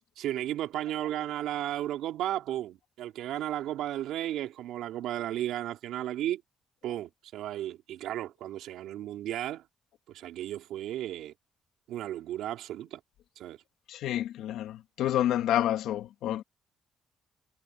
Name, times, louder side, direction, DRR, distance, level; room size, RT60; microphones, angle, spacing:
voice 1, 0.2-6.4 6.8-9.6 10.1-11.3 11.9-13.0 13.4-13.6, right 12 dB, 85° right, 3.3 m, -34 dB
voice 2, 13.9-16.4, left 12 dB, 85° left, 1.8 m, -29 dB
cardioid pair, 90°, 0 cm